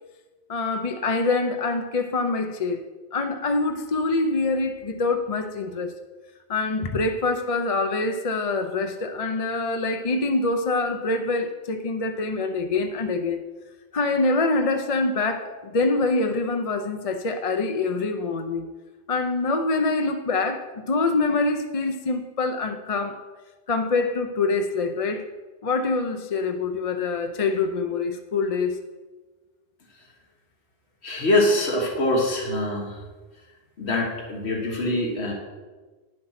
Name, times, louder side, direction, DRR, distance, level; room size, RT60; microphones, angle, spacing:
voice 1, 0.5-2.8 3.1-5.9 6.5-13.4 13.9-18.7 19.1-23.2 23.7-25.2 25.6-28.8, left 3 dB, 40° left, 6 dB, 0.6 m, -25 dB
voice 2, 31.0-33.0 33.8-35.3, left 1 dB, 80° left, 0 dB, 1.9 m, -24 dB
10.0 x 7.7 x 5.8 m, 1.3 s
omnidirectional pair, 1.1 m